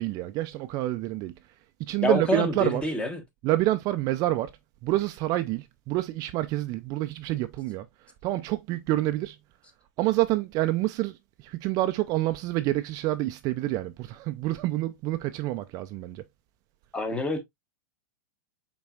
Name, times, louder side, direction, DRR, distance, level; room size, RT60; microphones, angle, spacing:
voice 1, 0.0-1.3 1.8-2.8 3.4-4.5 4.8-7.9 8.2-9.4 10.0-16.2, right 16 dB, 40° right, 0.4 m, -27 dB
voice 2, 2.0-3.2 16.9-17.4, left 2 dB, 10° left, 1.1 m, -27 dB
5.6 x 4.0 x 2.3 m
hypercardioid pair, 125°, 10 cm